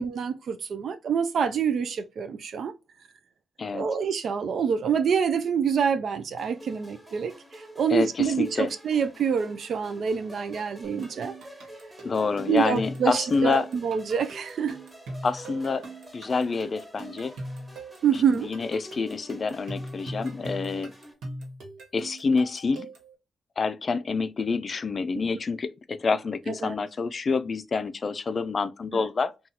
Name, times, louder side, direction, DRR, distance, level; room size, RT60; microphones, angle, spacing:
voice 1, 0.0-2.7 3.7-11.3 12.5-14.8 18.0-18.5 26.6-26.7 28.9-29.0, right 7 dB, 70° right, 0.3 m, -26 dB
sound 1, 6.4-21.1, equal, 15° right, 1.2 m, -48 dB
voice 2, 7.9-8.7 12.0-13.7 15.2-15.8 16.1-17.3 18.1-20.9 21.9-22.9 23.6-29.3, left 4 dB, 50° left, 0.3 m, -27 dB
sound 2, 10.8-23.1, right 1 dB, 85° right, 1.1 m, -40 dB
2.8 x 2.3 x 3.8 m
cardioid pair, 60°, 0 cm